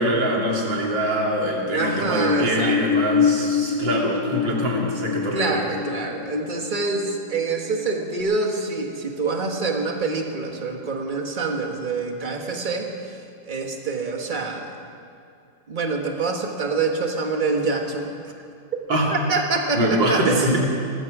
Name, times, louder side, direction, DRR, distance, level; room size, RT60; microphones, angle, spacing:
voice 1, 0.0-5.6 18.9-19.1 19.7-20.6, right 1 dB, 85° right, -2 dB, 3.3 m, -23 dB
sound 1, 1.5-7.8 8.2-8.3, left 6 dB, 65° left, 2.2 m, -26 dB
voice 2, 1.7-2.8 5.3-12.9 13.5-14.7 15.7-18.3 19.1-20.6, right 3 dB, 30° right, 2 dB, 1.4 m, -26 dB
19.5 x 14.0 x 4.9 m, 2.5 s
omnidirectional pair, 2.0 m